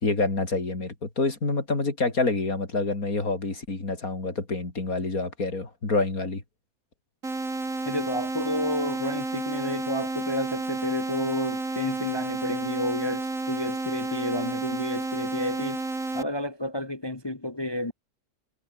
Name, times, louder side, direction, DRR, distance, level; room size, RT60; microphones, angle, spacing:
voice 1, 0.0-6.4, left 3 dB, 60° left, 4.4 m, -27 dB
sound 1, 7.2-16.2, right 2 dB, 55° right, 4.8 m, -31 dB
voice 2, 7.9-15.8 16.1-17.9, left 1 dB, 15° left, 1.2 m, -31 dB
omnidirectional pair, 1.7 m